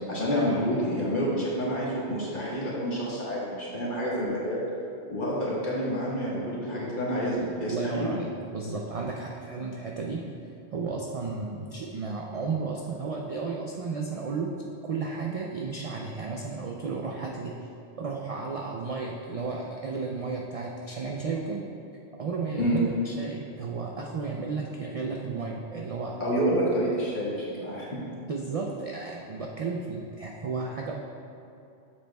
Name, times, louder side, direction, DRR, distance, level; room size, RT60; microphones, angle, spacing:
voice 1, 0.1-4.6 5.1-8.1 22.6-22.8 26.2-28.0, equal, 45° left, -6 dB, 1.5 m, -28 dB
voice 2, 7.6-10.2 10.7-14.5 14.8-17.7 18.0-21.6 22.2-26.2 28.3-30.9, right 4 dB, 55° right, -1 dB, 0.4 m, -33 dB
7.7 x 6.8 x 2.2 m, 2.7 s
omnidirectional pair, 1.2 m